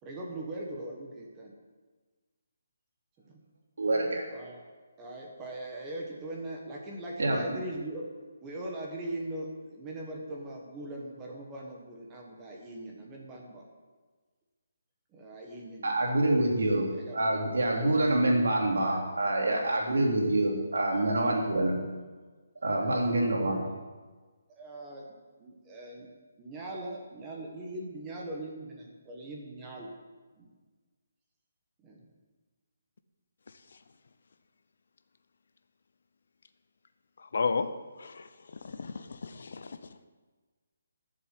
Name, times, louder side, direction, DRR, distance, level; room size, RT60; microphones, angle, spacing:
voice 1, 0.0-1.5 3.3-3.4 4.3-4.6 5.0-8.0 8.4-13.6 15.1-16.1 16.9-17.6 24.5-25.1 25.4-26.1 26.4-29.9 30.4-30.5 31.8-32.0, right 1 dB, 10° right, -1 dB, 1.2 m, -40 dB
voice 2, 3.8-4.2 7.2-7.4 15.8-16.9 17.1-21.7 22.6-23.6, right 1 dB, 80° right, -1 dB, 3.4 m, -26 dB
voice 3, 37.2-37.7 38.0-38.3 38.6-39.8, left 4 dB, 55° left, 10 dB, 0.7 m, -33 dB
12.0 x 7.4 x 7.5 m, 1.3 s
hypercardioid pair, 175°, 0 cm